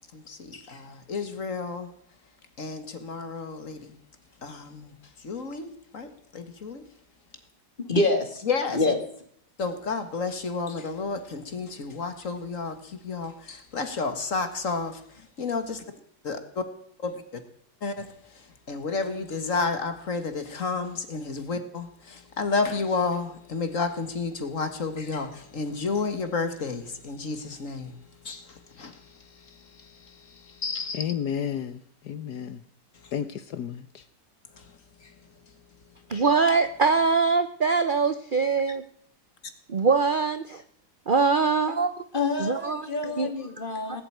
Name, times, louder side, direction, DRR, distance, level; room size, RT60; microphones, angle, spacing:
voice 1, 0.1-1.9 2.6-3.9 4.4-4.9 5.2-6.9 8.5-8.8 9.6-14.9 15.4-15.8 16.2-16.6 17.0-17.4 17.8-31.0 33.0-33.1 34.5-35.1, left 4 dB, 50° left, 2.0 m, -31 dB
voice 2, 7.9-8.4 8.7-9.0 42.1-44.0, left 2 dB, 30° left, 2.6 m, -26 dB
voice 3, 30.9-32.6 33.1-34.1, left 8 dB, 70° left, 1.4 m, -32 dB
voice 4, 36.1-38.8 39.7-40.6 41.1-42.0 42.4-43.3, right 4 dB, 45° right, 0.7 m, -23 dB
19.0 x 8.0 x 9.2 m
omnidirectional pair, 1.8 m